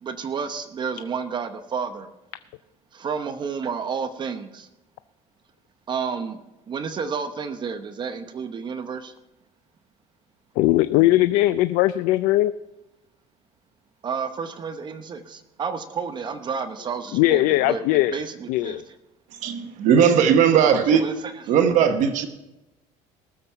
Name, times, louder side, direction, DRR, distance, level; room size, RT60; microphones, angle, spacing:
voice 1, 0.0-2.1 2.9-4.7 5.9-6.4 6.7-9.1 14.0-17.8 18.1-18.8 20.7-21.3, right 6 dB, 35° right, 9 dB, 0.8 m, -30 dB
voice 2, 10.6-12.5 17.1-18.2 18.5-18.8, left 16 dB, 80° left, 13 dB, 0.4 m, -19 dB
voice 3, 19.4-21.0 21.5-22.3, right 7 dB, 65° right, 7 dB, 1.2 m, -18 dB
18.5 x 7.3 x 5.7 m, 0.97 s
cardioid pair, 135°, 14 cm